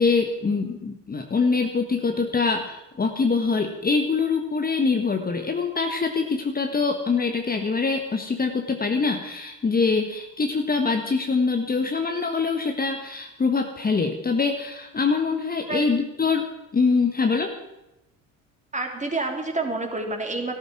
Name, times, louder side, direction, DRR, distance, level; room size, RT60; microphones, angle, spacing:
voice 1, 0.0-16.5 16.7-17.5, left 4 dB, 20° left, 4 dB, 1.5 m, -24 dB
voice 2, 18.7-20.6, right 2 dB, 20° right, 3 dB, 3.3 m, -28 dB
14.5 x 12.5 x 6.1 m, 0.95 s
hypercardioid pair, 65°, 40 cm